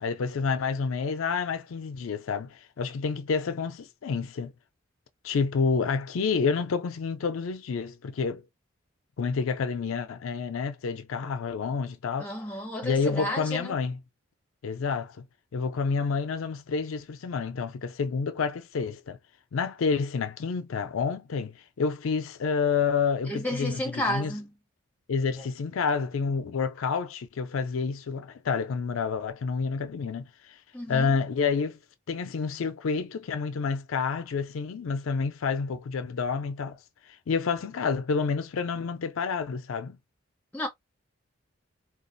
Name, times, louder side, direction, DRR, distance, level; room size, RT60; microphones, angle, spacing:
voice 1, 0.0-4.5 5.2-8.4 9.2-12.3 12.8-14.0 14.6-15.2 15.5-19.2 19.5-24.3 25.1-30.6 30.9-31.8 32.1-36.8 37.1-40.0, left 5 dB, 80° left, 0.4 m, -29 dB
voice 2, 12.2-13.7 23.2-24.5 30.7-31.2 40.5-40.7, left 1 dB, 10° left, 0.8 m, -32 dB
3.8 x 2.3 x 2.6 m
head